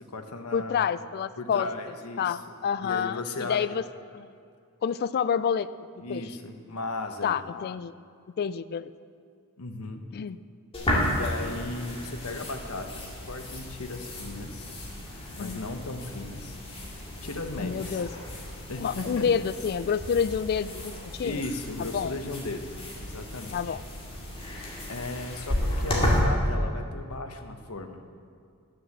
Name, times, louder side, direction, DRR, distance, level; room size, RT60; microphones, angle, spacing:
voice 1, 0.0-0.9 1.4-2.4 2.8-3.6 6.0-7.4 9.6-10.0 11.1-14.7 15.1-16.6 17.2-18.0 18.7-19.3 21.2-22.6 23.0-23.7 24.9-28.1, left 2 dB, 80° left, 5 dB, 1.0 m, -36 dB
voice 2, 0.5-1.7 2.2-3.8 4.1-4.3 4.8-5.7 6.1-6.2 7.2-7.9 8.4-8.9 10.1-10.4 15.4-15.7 17.6-18.1 18.8-21.4 21.8-22.1 23.5-23.8, left 7 dB, 45° left, 16 dB, 0.3 m, -28 dB
sound 1, 10.7-26.2, left 1 dB, 25° left, 2.2 m, -33 dB
11.0 x 6.8 x 7.2 m, 2.3 s
head